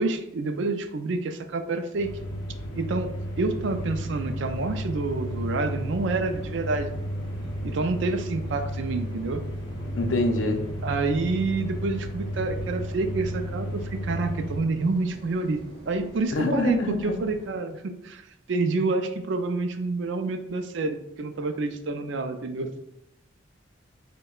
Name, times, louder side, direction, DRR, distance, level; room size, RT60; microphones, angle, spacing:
voice 1, 0.0-2.1 2.8-3.1 3.4-6.9 7.6-9.4 10.8-18.2 18.5-22.7, right 3 dB, 65° right, 7 dB, 0.4 m, -28 dB
sound 1, 2.0-14.6, equal, 20° left, 0.7 m, -33 dB
sound 2, 3.5-17.5, equal, 20° right, 1.5 m, -47 dB
voice 2, 9.9-10.6 16.3-17.2, left 2 dB, 80° left, 5 dB, 0.5 m, -25 dB
6.4 x 2.2 x 2.3 m, 0.81 s
head